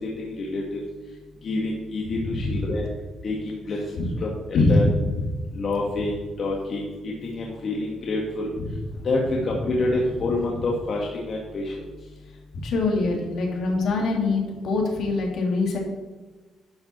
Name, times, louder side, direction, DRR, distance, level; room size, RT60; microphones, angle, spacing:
voice 1, 0.0-0.8 1.4-2.9 3.2-4.9 5.5-8.5 9.0-11.7, left 2 dB, 50° left, -2 dB, 1.8 m, -27 dB
voice 2, 4.5-5.1 12.6-15.8, left 3 dB, 70° left, 0 dB, 2.8 m, -23 dB
11.5 x 4.8 x 6.1 m, 1.3 s
cardioid pair, 90°, 0 cm